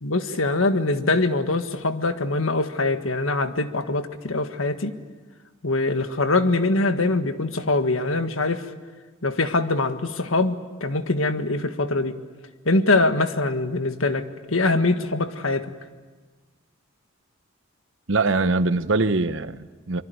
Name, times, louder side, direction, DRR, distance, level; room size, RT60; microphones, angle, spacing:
voice 1, 0.0-4.9 5.6-8.6 9.2-12.1 12.6-15.6, left 2 dB, 90° left, 8 dB, 1.7 m, -23 dB
voice 2, 18.1-20.0, right 3 dB, 65° right, 12 dB, 1.0 m, -23 dB
24.0 x 24.0 x 9.5 m, 1.4 s
head